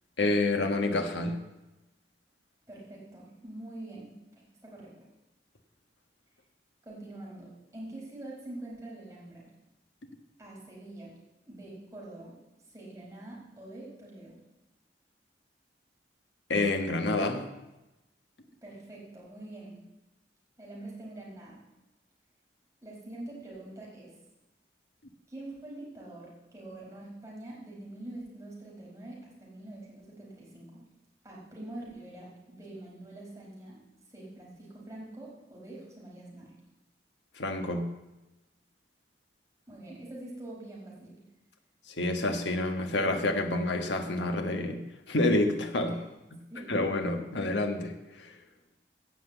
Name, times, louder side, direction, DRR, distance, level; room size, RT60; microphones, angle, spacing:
voice 1, 0.2-1.4 16.5-17.4 37.4-37.9 41.9-45.9 46.7-48.3, left 2 dB, 85° left, 5 dB, 1.5 m, -28 dB
voice 2, 2.7-4.9 6.8-9.5 10.4-11.1 11.5-12.4 12.7-14.4 18.6-19.7 20.6-21.6 22.8-24.1 25.3-30.9 31.2-33.8 34.1-36.5 39.7-41.2 45.8-46.0 46.5-46.8, right 1 dB, 20° right, -4 dB, 4.7 m, -45 dB
16.0 x 5.9 x 8.2 m, 0.99 s
head